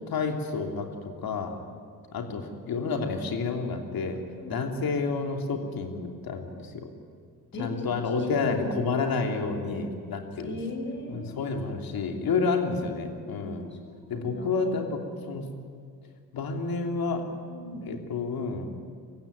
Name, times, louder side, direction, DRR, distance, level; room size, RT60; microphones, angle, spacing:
voice 1, 0.1-0.9 1.2-1.5 2.1-4.2 4.5-6.9 7.6-10.5 11.1-13.7 14.1-15.0 15.3-15.5 16.3-17.3 17.9-18.7, left 4 dB, 45° left, 3 dB, 3.2 m, -29 dB
voice 2, 2.5-3.4 4.4-4.6 6.0-6.1 7.5-7.7 8.3-8.5 8.9-9.0 10.4-11.7 12.7-12.9 13.2-14.6 17.5-17.9, left 2 dB, 25° left, 1 dB, 6.3 m, -40 dB
24.5 x 15.0 x 9.7 m, 2.1 s
figure-of-eight pair, 55°, 50 cm